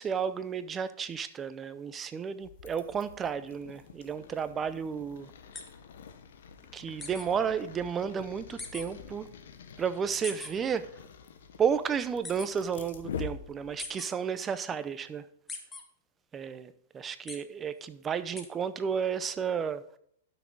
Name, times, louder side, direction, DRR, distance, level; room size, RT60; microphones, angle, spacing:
voice 1, 0.0-5.3 6.7-9.3 9.8-10.9 11.6-15.3 16.3-19.8, right 7 dB, 20° right, 0.6 m, -32 dB
sound 1, 2.4-14.0, left 6 dB, 75° left, 1.2 m, -46 dB
sound 2, 5.5-5.6 7.0-7.3 8.6-8.8 10.2-10.5 12.2-12.5 13.8-14.1 15.5-15.8 17.3-17.4 18.4-18.5, left 3 dB, 10° left, 1.1 m, -39 dB
12.0 x 6.1 x 3.9 m
hypercardioid pair, 145°, 0 cm